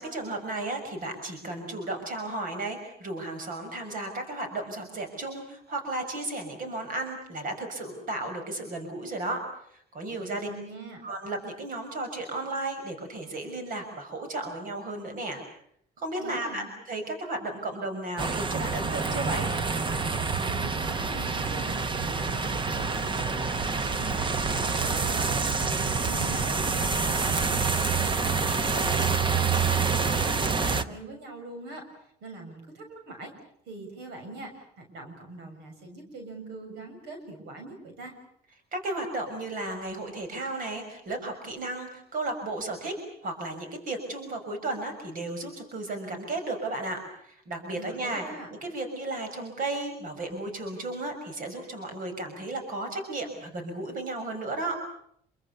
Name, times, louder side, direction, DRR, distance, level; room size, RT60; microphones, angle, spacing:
voice 1, 0.0-9.4 9.7-10.5 11.0-15.4 16.0-19.5 38.7-43.0 43.2-48.2 48.5-54.8, right 2 dB, 55° right, 6 dB, 6.1 m, -34 dB
voice 2, 10.2-11.0 16.2-16.7 20.5-33.3 33.6-38.1 47.7-48.5, right 2 dB, 85° right, 5 dB, 6.8 m, -43 dB
sound 1, 18.2-30.8, right 4 dB, 30° right, 1.2 m, -27 dB
27.5 x 24.5 x 6.8 m, 0.69 s
cardioid pair, 110°, 17 cm